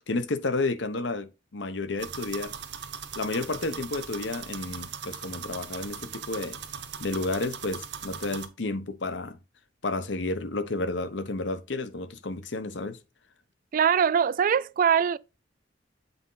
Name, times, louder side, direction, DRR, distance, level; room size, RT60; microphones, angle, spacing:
voice 1, 0.0-2.5 3.1-6.6 7.0-9.4 9.8-13.0, left 2 dB, 80° left, 0.9 m, -31 dB
sound 1, 2.0-8.5, right 7 dB, 70° right, 1.0 m, -39 dB
voice 2, 13.7-15.2, right 7 dB, 50° right, 0.3 m, -22 dB
8.0 x 4.2 x 3.9 m
head